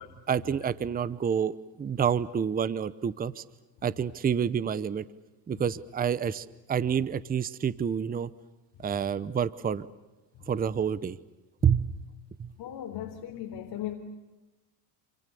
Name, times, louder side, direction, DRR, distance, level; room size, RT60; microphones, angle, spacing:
voice 1, 0.3-3.4 3.8-5.0 5.5-8.3 8.8-9.9 10.5-11.2 11.6-12.0 12.4-12.5, right 7 dB, 20° right, 17 dB, 0.8 m, -28 dB
voice 2, 12.6-13.9, left 11 dB, 50° left, 3 dB, 3.6 m, -37 dB
28.5 x 28.5 x 6.9 m, 1.1 s
supercardioid pair, 120°, 47 cm